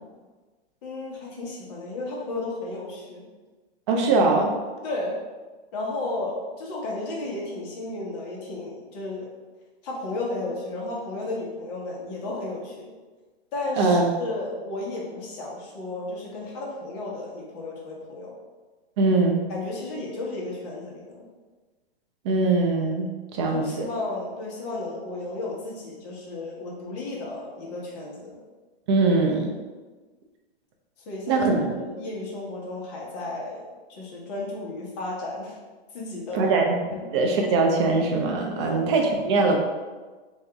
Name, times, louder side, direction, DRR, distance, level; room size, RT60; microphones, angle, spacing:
voice 1, 0.8-3.3 4.8-5.2 5.7-9.3 9.8-12.9 13.5-18.3 19.5-21.3 23.5-28.4 31.1-35.6 35.9-36.6 36.9-37.1 38.6-38.8, left 2 dB, 40° left, -3 dB, 1.0 m, -33 dB
voice 2, 3.9-4.5 13.8-14.1 19.0-19.4 22.2-23.9 28.9-29.5 31.3-31.6 36.3-36.7 37.1-39.6, right 3 dB, 30° right, 2 dB, 0.4 m, -22 dB
2.9 x 2.6 x 3.4 m, 1.3 s
hypercardioid pair, 145°, 32 cm